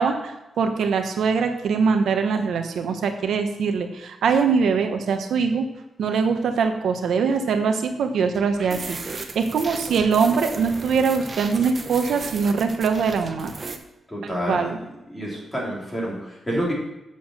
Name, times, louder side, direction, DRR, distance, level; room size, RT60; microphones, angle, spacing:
voice 1, 0.0-5.7 6.0-13.5 14.5-14.8, right 5 dB, 80° right, 6 dB, 1.0 m, -22 dB
sound 1, 8.3-13.8, right 3 dB, 30° right, 0.9 m, -36 dB
voice 2, 14.1-14.7 15.1-16.7, equal, 10° left, -5 dB, 3.3 m, -28 dB
8.5 x 7.0 x 6.2 m, 0.95 s
wide cardioid pair, 175°, 0 cm